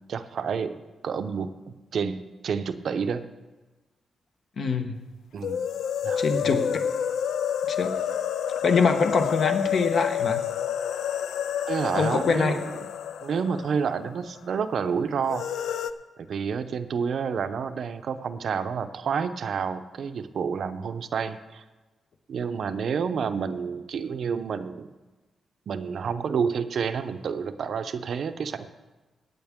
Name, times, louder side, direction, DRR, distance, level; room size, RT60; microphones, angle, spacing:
voice 1, 0.1-3.2 5.3-5.7 6.0-6.7 11.7-12.9 13.2-15.5 16.2-21.6 22.3-24.9 25.7-28.7, right 6 dB, 60° right, 10 dB, 0.6 m, -29 dB
voice 2, 4.6-5.0 6.2-6.7 7.7-7.9 8.6-10.4 12.0-12.6, left 5 dB, 55° left, 6 dB, 1.0 m, -24 dB
sound 1, 5.4-14.3 14.5-14.6 15.3-15.9, left 9 dB, 90° left, 0.4 m, -29 dB
17.5 x 8.5 x 3.6 m, 1.2 s
wide cardioid pair, 135°, 0 cm